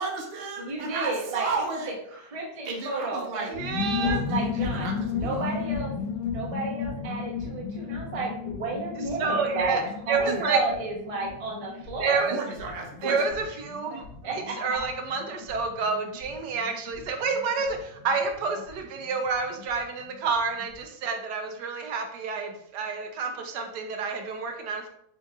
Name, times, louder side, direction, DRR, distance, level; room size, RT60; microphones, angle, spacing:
voice 1, 0.0-1.9 2.6-3.5 3.9-5.8 9.9-10.0 10.2-10.5 12.3-13.3, right 4 dB, 90° right, 1 dB, 0.5 m, -34 dB
voice 2, 0.6-1.5 1.8-1.9 2.3-3.5 4.3-4.9 5.1-5.9 6.2-12.2 13.0-13.1 14.2-14.8, right 3 dB, 35° right, -1 dB, 0.5 m, -32 dB
sound 1, 3.5-19.8 20.1-20.2 20.4-20.8, left 6 dB, 85° left, 1.3 m, -34 dB
voice 3, 3.6-4.2 9.2-10.6 12.0-12.3 13.0-13.3 13.6-24.9, right 4 dB, 70° right, 4 dB, 1.1 m, -29 dB
7.0 x 2.8 x 2.4 m, 0.72 s
omnidirectional pair, 2.0 m